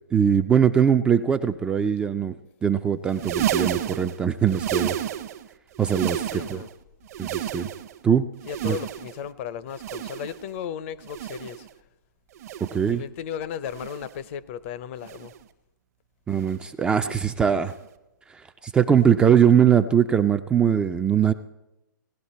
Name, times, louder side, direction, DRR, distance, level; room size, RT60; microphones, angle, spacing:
voice 1, 0.1-5.0 5.8-6.6 7.2-7.7 8.0-8.3 8.6-8.8 12.6-13.0 16.3-17.7 18.6-21.3, right 8 dB, 10° right, 8 dB, 0.3 m, -21 dB
sound 1, 3.1-5.5 5.7-6.7 7.0-8.0 8.4-9.3 9.7-10.5 11.0-11.7 12.4-12.9 13.7-14.2 15.0-15.4 16.4-16.7 17.7-17.9 19.0-19.1, right 11 dB, 45° right, 0.8 m, -31 dB
voice 2, 6.3-6.7 8.5-11.7 12.9-15.3, left 9 dB, 40° left, 16 dB, 0.6 m, -35 dB
17.5 x 11.0 x 4.2 m, 0.95 s
hypercardioid pair, 135°, 11 cm